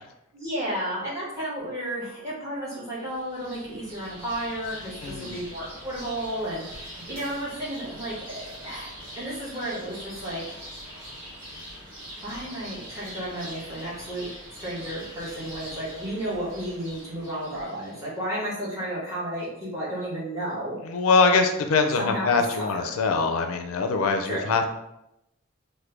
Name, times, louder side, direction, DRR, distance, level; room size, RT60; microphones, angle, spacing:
voice 1, 0.3-8.9 9.1-10.6 12.2-14.3 14.6-20.8 22.0-22.9 24.2-24.5, right 1 dB, 15° right, -8 dB, 1.2 m, -32 dB
sound 1, 2.9-18.1, equal, 60° right, 1.3 m, -43 dB
voice 2, 5.0-5.4 20.9-24.7, left 4 dB, 85° left, 5 dB, 0.4 m, -23 dB
3.1 x 2.2 x 3.3 m, 0.84 s
head